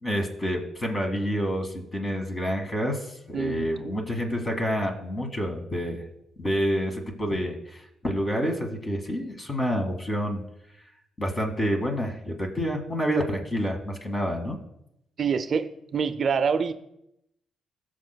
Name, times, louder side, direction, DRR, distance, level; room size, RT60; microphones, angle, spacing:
voice 1, 0.0-6.0 6.4-10.4 11.2-14.6, equal, 30° left, 3 dB, 1.9 m, -28 dB
voice 2, 3.3-4.1 15.2-16.7, right 6 dB, 55° right, 10 dB, 0.4 m, -27 dB
17.5 x 6.6 x 2.2 m, 0.81 s
cardioid pair, 80°, 0 cm